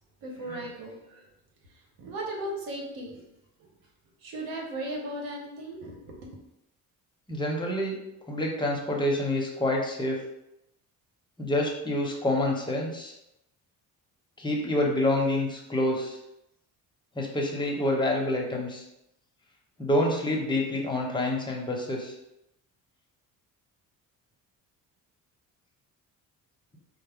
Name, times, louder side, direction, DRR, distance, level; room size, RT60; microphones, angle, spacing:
voice 1, 0.2-1.3 1.7-3.2 3.6-3.7 4.2-6.4, right 1 dB, 90° right, 0 dB, 1.0 m, -37 dB
voice 2, 7.3-8.0 8.3-10.2 11.4-13.1 14.4-16.2 17.2-18.8 19.8-22.1, left 1 dB, 15° left, -1 dB, 0.9 m, -27 dB
4.7 x 2.0 x 3.5 m, 0.86 s
cardioid pair, 100°, 34 cm